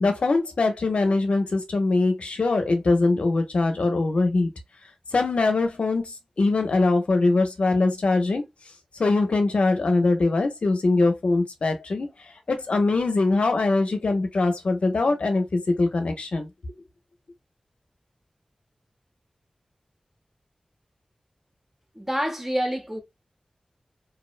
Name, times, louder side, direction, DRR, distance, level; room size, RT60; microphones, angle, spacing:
voice 1, 0.0-4.5 5.1-8.4 8.9-12.1 12.5-16.5, left 3 dB, 75° left, 0.5 m, -22 dB
voice 2, 21.9-23.0, equal, 15° right, 0.7 m, -27 dB
2.6 x 2.0 x 2.4 m
wide cardioid pair, 60°, 2 cm